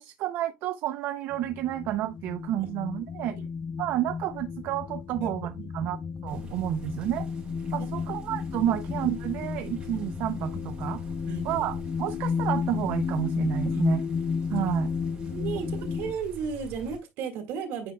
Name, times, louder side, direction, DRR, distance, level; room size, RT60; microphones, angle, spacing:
voice 1, 0.0-3.4 3.8-6.0 6.2-7.3 7.7-11.0 11.4-14.0 14.5-14.9, right 12 dB, 60° right, 0.5 m, -30 dB
sound 1, 1.3-16.1, left 6 dB, 25° left, 0.4 m, -33 dB
voice 2, 5.6-6.0 8.6-8.8 11.2-11.7 12.1-12.2 13.7-13.8 15.3-17.9, right 6 dB, 85° right, 2.1 m, -35 dB
sound 2, 6.3-17.0, right 2 dB, 25° right, 3.9 m, -45 dB
8.7 x 5.2 x 2.2 m
cardioid pair, 180°, 4 cm